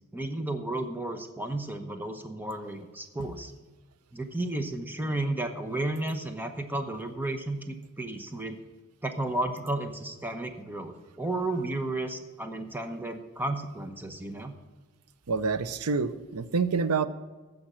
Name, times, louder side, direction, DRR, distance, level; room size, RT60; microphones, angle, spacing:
voice 1, 0.1-3.5 4.1-8.6 9.0-14.5, right 2 dB, 10° right, 6 dB, 0.9 m, -33 dB
voice 2, 15.3-17.1, right 4 dB, 90° right, 13 dB, 0.6 m, -27 dB
15.0 x 5.2 x 7.4 m, 1.3 s
head